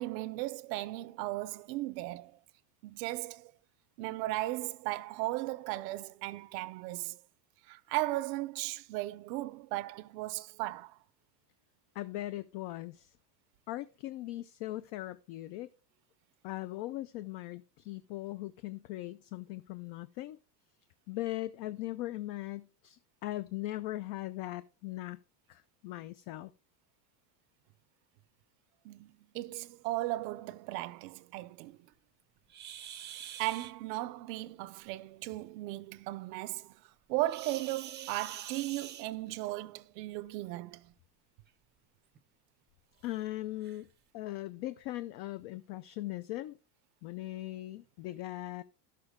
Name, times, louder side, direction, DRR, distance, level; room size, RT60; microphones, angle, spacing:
voice 1, 0.0-2.4 2.8-3.5 4.0-7.2 7.7-11.0 28.8-31.9 33.4-36.8 37.1-40.9, right 18 dB, 75° right, 0.7 m, -36 dB
voice 2, 11.9-13.1 13.7-15.7 16.4-20.4 21.1-25.2 25.5-26.5 43.0-43.9 44.1-46.6 47.0-48.6, left 16 dB, 55° left, 0.5 m, -39 dB
sound 1, 32.5-33.7 37.2-39.5 40.7-40.9 41.5-41.6 42.1-42.2 43.0-43.1 43.6-43.8, right 10 dB, 20° right, 0.6 m, -45 dB
12.0 x 6.8 x 3.6 m
supercardioid pair, 145°, 50 cm